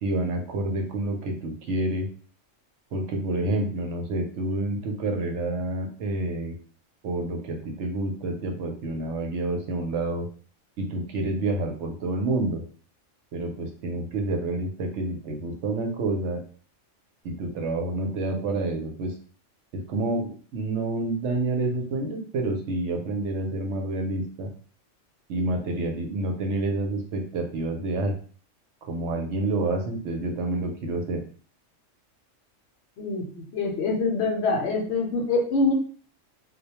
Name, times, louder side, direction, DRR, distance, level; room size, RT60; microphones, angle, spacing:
voice 1, 0.0-2.1 2.9-6.5 7.0-10.3 10.8-12.6 13.3-16.4 17.2-19.1 19.7-24.5 25.3-28.1 28.9-31.2, right 2 dB, 70° right, 3 dB, 0.8 m, -28 dB
voice 2, 33.0-35.7, left 3 dB, 65° left, 1 dB, 0.8 m, -25 dB
2.2 x 2.1 x 2.8 m, 0.42 s
omnidirectional pair, 1.3 m